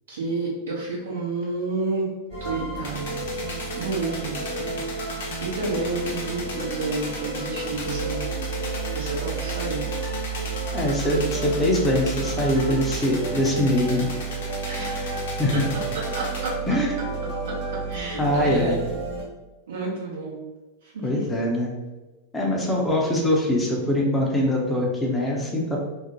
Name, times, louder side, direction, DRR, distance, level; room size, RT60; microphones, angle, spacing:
voice 1, 0.1-2.1 2.4-3.2 3.7-4.8 5.4-8.2 8.9-9.9 14.6-15.0 15.9-16.6 17.4-18.8 19.7-20.4 20.8-21.3, right 3 dB, 65° right, -5 dB, 0.9 m, -30 dB
sound 1, 2.3-19.2, right 4 dB, 35° right, 1.4 m, -31 dB
sound 2, 2.8-16.5, left 2 dB, 55° left, 0.6 m, -37 dB
voice 2, 10.7-14.1 15.4-15.6 16.7-16.9 18.2-18.8 21.0-21.7 22.3-25.8, left 1 dB, 15° left, -2 dB, 0.5 m, -23 dB
2.5 x 2.1 x 2.8 m, 1.1 s
figure-of-eight pair, 90°, 0 cm